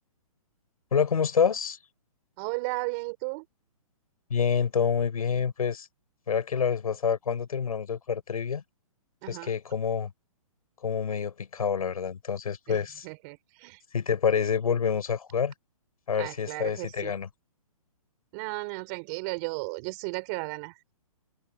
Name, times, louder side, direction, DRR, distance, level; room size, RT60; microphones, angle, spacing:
voice 1, 0.9-1.8 4.3-5.9 6.3-8.6 9.3-10.1 10.8-13.1 13.9-15.5 16.1-17.3, left 7 dB, 85° left, 7.1 m, -27 dB
voice 2, 2.4-3.4 9.2-9.5 12.7-12.8 13.0-13.8 16.2-17.1 18.3-20.7, right 28 dB, 30° right, 4.6 m, -34 dB
hypercardioid pair, 165°, 18 cm